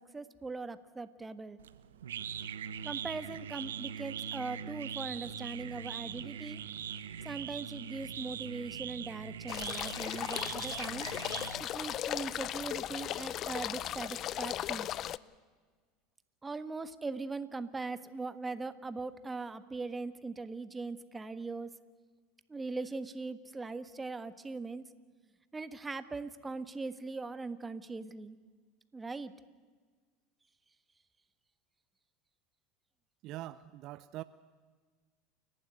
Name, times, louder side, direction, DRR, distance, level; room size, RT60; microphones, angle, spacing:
voice 1, 0.0-1.6 2.8-6.6 7.2-11.1 11.6-14.9 16.4-21.7 22.5-24.8 25.5-28.4 28.9-29.3, right 3 dB, 15° right, 12 dB, 1.5 m, -40 dB
sound 1, 1.6-12.0, right 8 dB, 85° right, 1.0 m, -41 dB
sound 2, 9.5-15.2, left 12 dB, 45° left, 0.6 m, -37 dB
voice 2, 33.2-34.2, right 15 dB, 55° right, 16 dB, 0.6 m, -43 dB
29.5 x 12.0 x 9.3 m, 1.5 s
hypercardioid pair, 90°, 0 cm